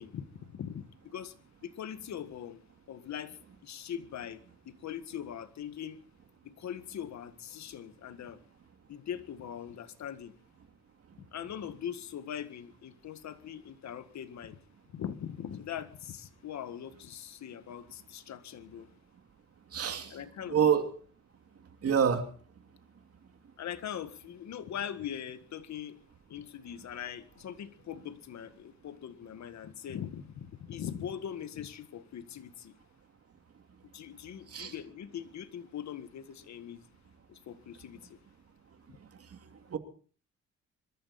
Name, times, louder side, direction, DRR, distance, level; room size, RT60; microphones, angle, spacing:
voice 1, 0.0-1.4 1.6-2.6 2.9-6.0 6.4-8.4 8.9-10.3 11.2-14.6 14.9-18.9 20.1-20.6 23.6-26.0 26.3-32.8 33.9-36.9 37.3-38.2, left 9 dB, 65° left, 1.8 m, -41 dB
voice 2, 19.7-20.2 20.5-20.9 21.8-22.3 34.5-34.7 39.3-39.8, right 7 dB, 50° right, 2.6 m, -27 dB
25.0 x 13.5 x 4.2 m
cardioid pair, 90°, 30 cm